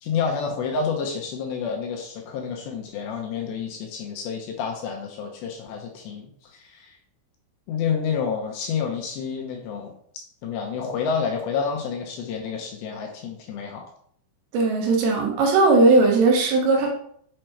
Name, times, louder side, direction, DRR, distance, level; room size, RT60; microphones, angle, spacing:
voice 1, 0.0-7.0 7.7-9.9 10.4-13.9, left 6 dB, 75° left, 1 dB, 2.8 m, -29 dB
voice 2, 14.5-16.9, right 3 dB, 70° right, 0 dB, 3.2 m, -18 dB
7.8 x 5.0 x 4.6 m, 0.64 s
omnidirectional pair, 5.6 m